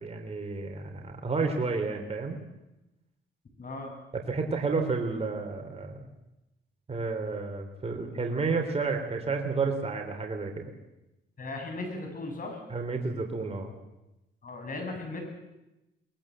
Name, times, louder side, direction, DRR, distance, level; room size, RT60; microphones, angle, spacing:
voice 1, 0.0-2.4 4.1-6.0 6.9-10.7 12.7-13.7, right 4 dB, 30° right, 3 dB, 3.4 m, -31 dB
voice 2, 3.6-3.9 11.4-12.6 14.4-15.2, left 2 dB, 45° left, 4 dB, 7.2 m, -37 dB
22.5 x 20.0 x 7.6 m, 0.96 s
cardioid pair, 90°, 20 cm